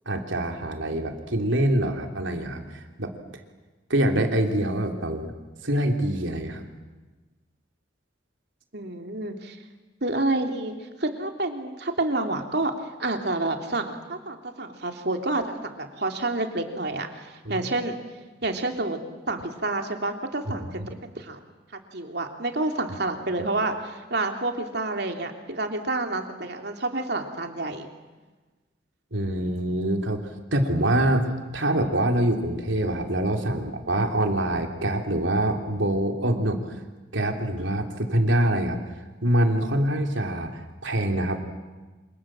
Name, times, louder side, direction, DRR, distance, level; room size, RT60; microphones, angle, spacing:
voice 1, 0.0-3.1 3.9-5.3 5.6-6.7 17.4-17.6 20.6-20.9 29.1-30.2 30.5-36.6 37.1-38.8 39.2-41.4, right 1 dB, 75° right, 4 dB, 3.4 m, -25 dB
voice 2, 8.7-9.6 10.0-12.7 13.0-18.0 18.4-19.0 19.3-21.4 21.9-27.9, right 2 dB, 55° right, 5 dB, 3.0 m, -29 dB
28.0 x 27.0 x 7.6 m, 1.2 s
head